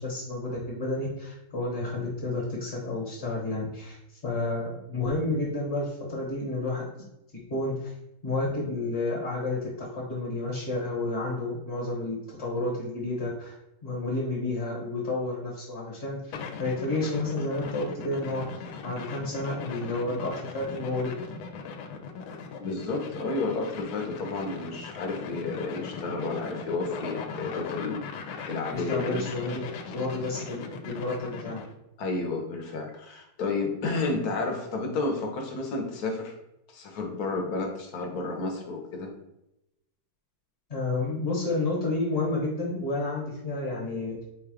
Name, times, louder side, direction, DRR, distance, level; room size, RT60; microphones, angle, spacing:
voice 1, 0.0-4.0 4.2-7.0 7.5-7.9 8.2-13.5 13.8-21.2 28.7-29.6 29.9-31.6 40.7-44.2, left 2 dB, 35° left, -5 dB, 1.2 m, -30 dB
sound 1, 16.3-31.7, left 5 dB, 80° left, 1.3 m, -39 dB
voice 2, 22.6-28.0 28.5-29.3 30.1-30.2 32.0-36.3 36.7-39.1, left 3 dB, 60° left, 2 dB, 1.1 m, -31 dB
4.5 x 2.3 x 4.8 m, 0.88 s
omnidirectional pair, 2.2 m